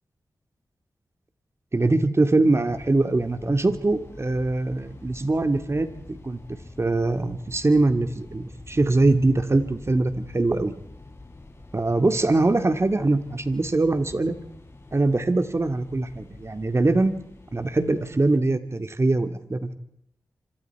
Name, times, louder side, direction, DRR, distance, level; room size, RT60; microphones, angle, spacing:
voice 1, 1.7-6.4 6.8-10.7 11.7-14.3 14.9-17.2 17.5-19.7, right 2 dB, 40° right, 10 dB, 2.1 m, -22 dB
sound 1, 2.6-18.4, left 2 dB, 35° left, 4.7 m, -46 dB
27.0 x 25.5 x 4.7 m, 0.74 s
cardioid pair, 45°, 7 cm